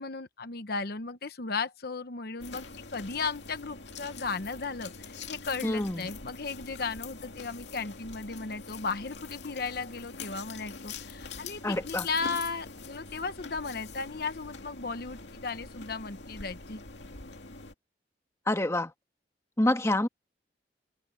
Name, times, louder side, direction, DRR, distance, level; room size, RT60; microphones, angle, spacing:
voice 1, 0.0-2.7 2.9-16.8, left 4 dB, 60° left, 1.0 m, -35 dB
sound 1, 2.4-17.7, left 4 dB, 85° left, 2.3 m, -44 dB
voice 2, 5.6-6.1 11.6-12.1 18.5-18.9 19.6-20.1, left 1 dB, 15° left, 1.6 m, -27 dB
head